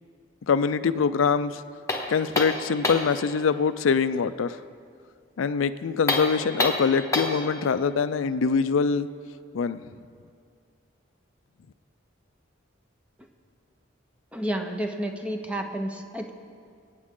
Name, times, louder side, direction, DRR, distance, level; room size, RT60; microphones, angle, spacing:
voice 1, 0.5-1.6 2.1-4.6 5.4-9.1 9.5-9.8, left 5 dB, 85° left, 13 dB, 0.4 m, -24 dB
sound 1, 1.9-3.2 6.0-7.5, left 2 dB, 15° left, 1.2 m, -27 dB
voice 2, 14.3-16.3, right 1 dB, 5° right, 4 dB, 0.7 m, -30 dB
24.0 x 9.1 x 3.7 m, 2.3 s
head